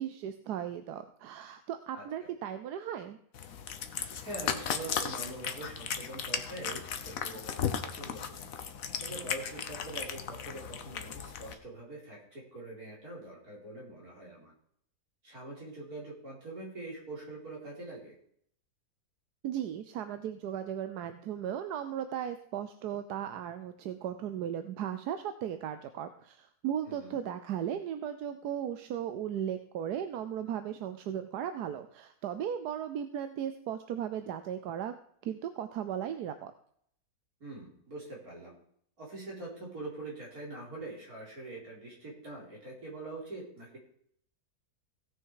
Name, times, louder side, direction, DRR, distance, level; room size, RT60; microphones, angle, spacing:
voice 1, 0.0-3.2 19.4-34.9 35.2-36.5, right 9 dB, 90° right, 10 dB, 1.3 m, -36 dB
voice 2, 1.9-2.3 4.2-8.5 9.0-14.5 15.2-18.2 26.9-27.2 37.4-38.6 39.0-43.8, right 2 dB, 65° right, -4 dB, 4.7 m, -44 dB
Cat, 3.3-11.5, left 7 dB, 60° left, 1.3 m, -36 dB
17.0 x 6.4 x 4.8 m, 0.66 s
omnidirectional pair, 1.7 m